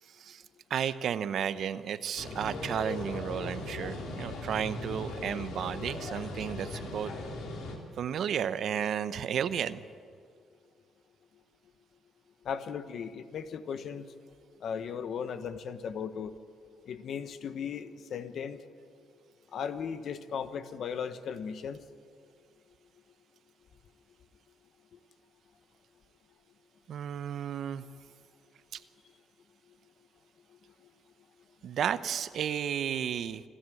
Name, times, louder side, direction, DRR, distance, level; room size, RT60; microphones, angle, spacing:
voice 1, 0.1-0.4 0.7-7.1 8.0-9.8 26.9-27.8 28.7-28.8 31.6-33.4, right 8 dB, 65° right, 14 dB, 0.8 m, -33 dB
sound 1, 2.2-7.8, left 2 dB, 85° left, 3.4 m, -38 dB
voice 2, 12.4-14.0 14.6-16.3 16.9-18.6 19.5-21.8, left 7 dB, 65° left, 11 dB, 1.2 m, -36 dB
27.5 x 13.0 x 7.8 m, 2.2 s
cardioid pair, 90°, 0 cm